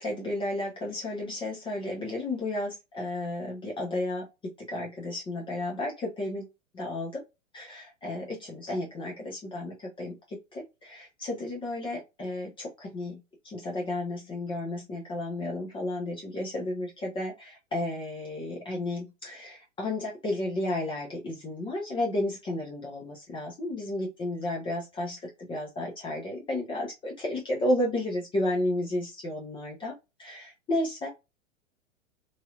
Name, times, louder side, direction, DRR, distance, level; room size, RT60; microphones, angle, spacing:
voice 1, 0.0-4.3 4.7-6.5 6.7-7.2 7.5-10.1 10.5-13.2 13.5-29.9 30.2-31.1, left 1 dB, 15° left, -2 dB, 0.7 m, -32 dB
3.2 x 2.7 x 2.3 m, 0.23 s
figure-of-eight pair, 105°, 39 cm